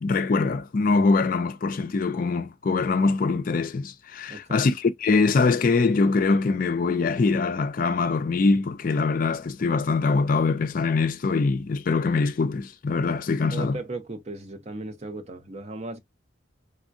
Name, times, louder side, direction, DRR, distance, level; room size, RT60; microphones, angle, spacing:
voice 1, 0.0-13.8, left 4 dB, 45° left, 0.4 m, -23 dB
voice 2, 4.3-4.6 13.5-16.0, right 2 dB, 35° right, 0.6 m, -36 dB
3.5 x 2.2 x 2.5 m
head